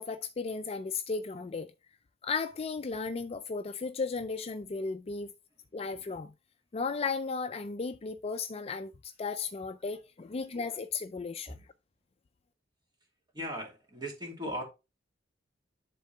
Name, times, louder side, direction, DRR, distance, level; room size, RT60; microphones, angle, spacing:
voice 1, 0.0-1.7 2.2-5.3 5.7-6.3 6.7-11.6, left 4 dB, 30° left, 0.4 m, -35 dB
voice 2, 13.3-14.6, equal, 25° right, 2.4 m, -38 dB
11.0 x 3.8 x 3.2 m
head